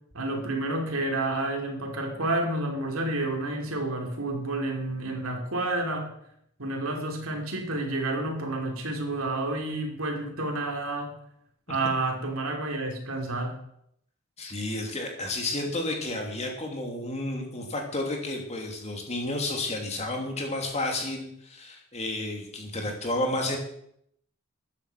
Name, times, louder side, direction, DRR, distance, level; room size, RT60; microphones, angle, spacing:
voice 1, 0.1-6.1 6.6-11.1 11.7-13.6, right 2 dB, 65° right, 2 dB, 3.1 m, -30 dB
voice 2, 14.4-23.6, left 2 dB, 30° left, 2 dB, 2.9 m, -31 dB
13.5 x 10.0 x 6.1 m, 0.71 s
head